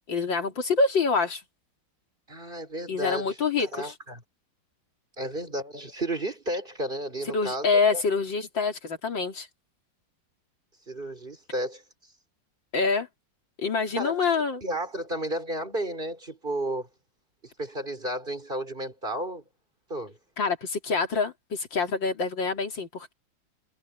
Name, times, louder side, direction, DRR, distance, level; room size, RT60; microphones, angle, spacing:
voice 1, 0.1-1.4 2.9-3.9 7.3-9.5 12.7-13.1 13.6-14.6 20.4-23.1, left 4 dB, 75° left, 3.5 m, -26 dB
voice 2, 2.3-4.2 5.2-7.7 7.9-8.0 10.9-11.8 14.0-14.2 14.6-16.9 17.4-19.4 19.9-20.2, right 1 dB, 25° right, 3.8 m, -33 dB
omnidirectional pair, 2.1 m